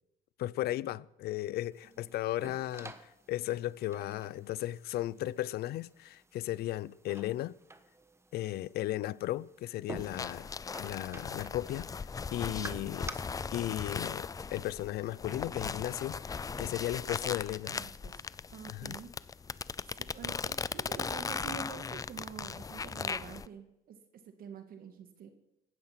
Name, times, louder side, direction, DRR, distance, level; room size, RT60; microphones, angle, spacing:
voice 1, 0.4-7.5 8.3-10.5 10.8-12.0 12.3-13.1 13.5-17.8 18.7-19.0, left 14 dB, 70° left, 0.5 m, -35 dB
sound 1, 1.7-13.1, right 3 dB, 15° right, 1.2 m, -51 dB
sound 2, 10.0-23.5, left 5 dB, 20° left, 0.4 m, -38 dB
voice 2, 12.5-12.8 17.7-18.2 18.5-19.1 19.9-24.0 24.3-25.3, right 6 dB, 60° right, 1.8 m, -47 dB
16.5 x 12.5 x 5.9 m
cardioid pair, 110°, 17 cm